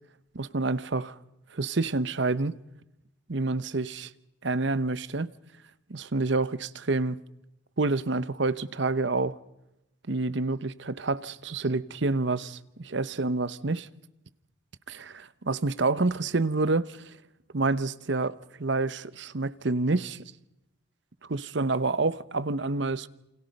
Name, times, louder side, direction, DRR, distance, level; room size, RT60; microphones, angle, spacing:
voice 1, 0.3-1.1 1.5-2.5 3.3-4.1 4.4-5.3 5.9-7.2 7.8-9.3 10.1-13.9 14.9-17.0 17.5-20.2 21.3-23.1, right 3 dB, 60° right, 0.9 m, -28 dB
29.0 x 26.5 x 5.3 m
head